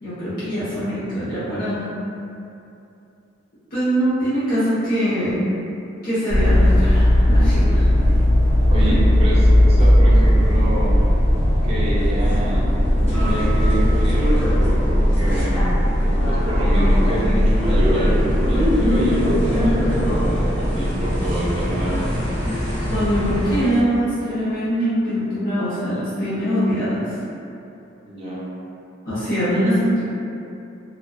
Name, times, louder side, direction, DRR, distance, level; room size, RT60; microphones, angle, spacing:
voice 1, 0.0-1.9 3.7-5.4 6.0-7.9 8.9-9.0 22.9-27.1 29.1-30.0, equal, 45° left, -15 dB, 0.8 m, -22 dB
sound 1, 6.3-23.6, equal, 15° right, 1.0 m, -17 dB
voice 2, 8.7-11.0 11.6-12.7 13.1-15.7 16.3-22.3 28.0-28.5, right 1 dB, 30° right, -8 dB, 0.5 m, -28 dB
2.5 x 2.2 x 2.3 m, 2.7 s
head